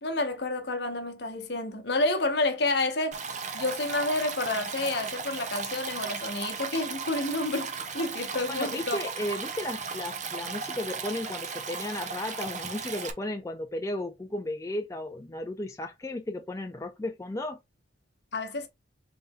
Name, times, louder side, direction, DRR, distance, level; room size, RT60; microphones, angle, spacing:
voice 1, 0.0-3.2 3.5-9.0 18.3-18.7, left 2 dB, 60° left, 1.0 m, -29 dB
Stream, 3.1-13.1, right 5 dB, 40° right, 0.7 m, -36 dB
voice 2, 8.5-17.6, left 1 dB, 15° left, 0.4 m, -34 dB
4.0 x 3.4 x 3.6 m
head